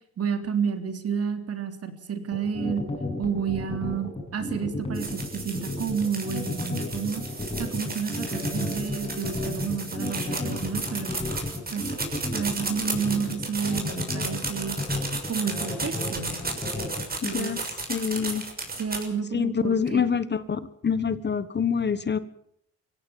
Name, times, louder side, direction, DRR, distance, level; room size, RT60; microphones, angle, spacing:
voice 1, 0.2-2.8 3.2-7.2 7.6-11.1 11.7-11.9 12.3-14.8 15.3-16.4 17.2-17.5 18.8-20.0, right 6 dB, 50° right, 8 dB, 3.6 m, -30 dB
sound 1, 2.3-17.0, left 2 dB, 20° left, 7.3 m, -32 dB
sound 2, 4.9-19.0, right 3 dB, 30° right, 6.6 m, -34 dB
voice 2, 17.2-17.6 17.9-18.5 19.3-22.2, left 6 dB, 35° left, 14 dB, 1.4 m, -26 dB
24.0 x 16.5 x 7.3 m, 0.67 s
cardioid pair, 90°, 30 cm